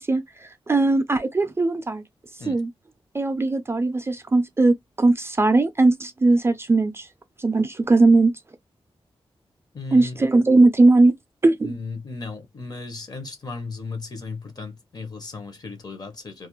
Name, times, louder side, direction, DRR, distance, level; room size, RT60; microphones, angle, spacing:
voice 1, 0.0-2.0 2.5-2.7 3.1-7.1 7.4-8.3 9.9-11.1 11.4-11.7, right 2 dB, 25° right, 0.3 m, -19 dB
voice 2, 9.7-10.2 11.6-16.5, left 3 dB, 40° left, 0.7 m, -35 dB
2.4 x 2.0 x 2.9 m
wide cardioid pair, 130°, 10 cm